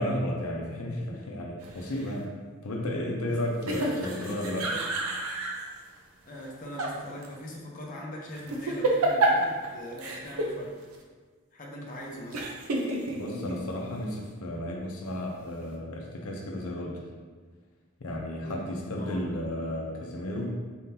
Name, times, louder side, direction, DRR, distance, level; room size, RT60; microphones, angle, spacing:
voice 1, 0.0-2.3 2.6-4.7 13.0-17.0 18.0-20.7, left 1 dB, 90° left, 0 dB, 0.6 m, -33 dB
voice 2, 0.9-1.2 3.3-3.4 3.7-4.8 6.3-10.7 11.5-12.6 18.4-18.6 18.9-19.3, equal, 40° left, -3 dB, 0.7 m, -41 dB
sound 1, 1.6-2.2 3.6-5.7 6.4-6.9 7.2-7.3 8.4-9.7 10.0-10.5 10.9-11.0 12.3-13.6, right 2 dB, 90° right, 0.6 m, -29 dB
4.3 x 3.7 x 2.8 m, 1.5 s
head